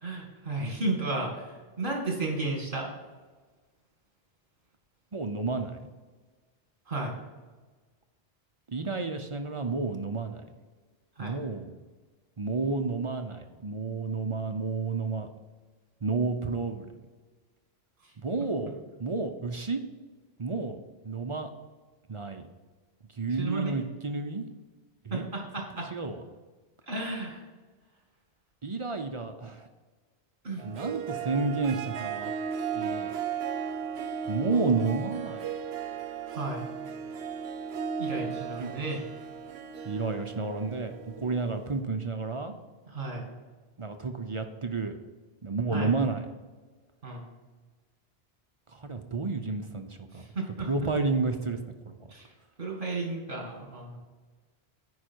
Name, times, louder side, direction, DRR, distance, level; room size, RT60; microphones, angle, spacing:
voice 1, 0.0-2.9 6.9-7.1 11.2-11.4 23.4-23.7 25.1-25.9 26.9-27.4 30.4-30.6 36.3-36.7 38.0-39.1 42.9-43.3 45.7-45.9 47.0-47.3 50.3-50.7 52.1-52.3 52.6-54.0, right 2 dB, 55° right, 0 dB, 2.3 m, -33 dB
voice 2, 5.1-5.8 8.7-10.4 11.2-11.7 12.4-15.3 16.0-16.9 18.2-19.8 20.4-20.8 21.0-21.5 22.1-22.4 23.1-24.5 25.0-25.3 25.9-26.2 28.6-29.7 30.6-32.3 32.7-33.1 34.3-35.5 38.6-38.7 39.8-42.5 43.8-45.0 45.4-46.3 48.7-50.2 50.6-52.0, right 3 dB, 35° right, 6 dB, 0.6 m, -31 dB
Harp, 30.6-41.8, right 7 dB, 85° right, 0.9 m, -36 dB
9.4 x 5.2 x 4.5 m, 1.4 s
omnidirectional pair, 1.0 m